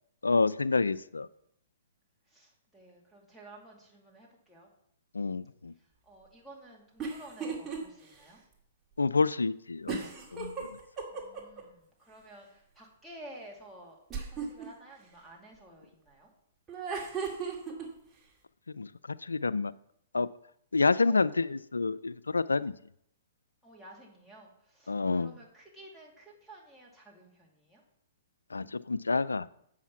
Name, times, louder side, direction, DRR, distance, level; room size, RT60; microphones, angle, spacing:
voice 1, 0.2-1.3 5.1-5.7 9.0-10.0 10.3-10.7 18.8-19.7 20.1-20.3 20.7-22.7 24.9-25.3 28.5-29.5, left 4 dB, 90° left, 16 dB, 0.3 m, -28 dB
voice 2, 2.3-4.7 5.8-8.4 11.1-14.0 14.2-16.3 21.1-21.2 23.6-27.8, right 1 dB, ahead, -3 dB, 2.4 m, -52 dB
sound 1, 7.0-7.8 8.2-8.3 9.9-11.6 14.1-14.7 16.7-17.9, right 5 dB, 20° right, 2.1 m, -35 dB
8.2 x 5.7 x 5.9 m, 0.72 s
hypercardioid pair, 125°, 0 cm